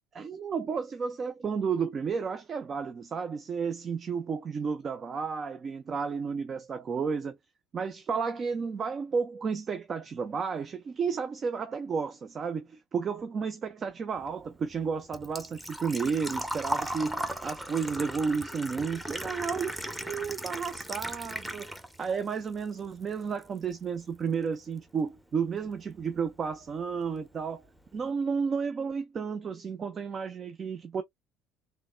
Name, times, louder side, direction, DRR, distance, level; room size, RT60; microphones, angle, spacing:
voice 1, 0.1-7.4 7.7-21.7 22.0-27.6 27.9-31.0, right 5 dB, 40° right, 0.7 m, -32 dB
Engine / Trickle dribble / Fill (with liquid), 14.2-22.1 22.4-23.4 23.7-23.8 25.7-25.8 26.0-26.3 26.7-26.8 27.1-27.2, equal, 5° right, 1.0 m, -37 dB
3.6 x 3.3 x 2.2 m
hypercardioid pair, 70°, 0 cm